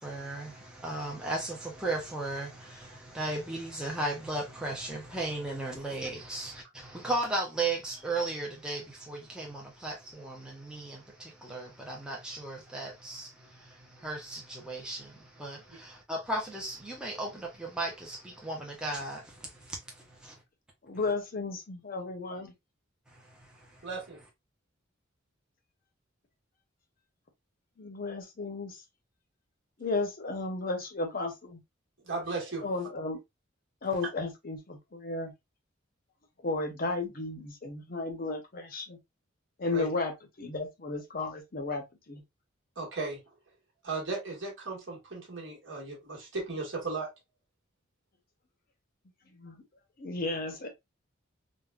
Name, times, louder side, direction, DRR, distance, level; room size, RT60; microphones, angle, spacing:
voice 1, 0.0-20.3 23.1-23.9, right 2 dB, 5° right, 0.5 m, -36 dB
voice 2, 20.8-22.5 27.8-28.8 29.8-31.6 32.6-33.2 33.8-35.3 36.4-39.0 39.6-40.1 40.4-42.2 49.3-49.6 50.0-50.7, left 3 dB, 45° left, 0.6 m, -34 dB
voice 3, 23.8-24.2 32.0-32.7 39.7-39.9 42.8-43.2 43.8-47.1, right 3 dB, 65° right, 1.2 m, -36 dB
3.5 x 2.1 x 2.2 m
head